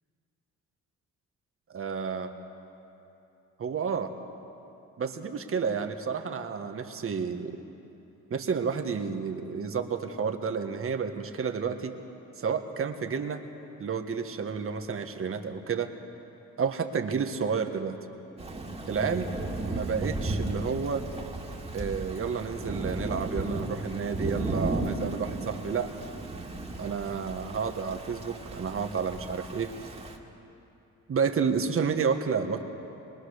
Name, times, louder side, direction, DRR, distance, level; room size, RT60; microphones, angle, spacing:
voice 1, 1.7-2.3 3.6-4.1 5.0-7.6 8.3-11.9 12.4-13.4 13.8-15.9 16.6-18.0 18.9-19.3 19.6-21.0 21.7-25.9 26.8-29.7 31.1-32.6, right 6 dB, 45° right, 6 dB, 1.6 m, -30 dB
Thunder / Rain, 18.4-30.2, right 2 dB, 20° right, 2.4 m, -35 dB
23.0 x 21.5 x 6.6 m, 2.9 s
cardioid pair, 90°, 30 cm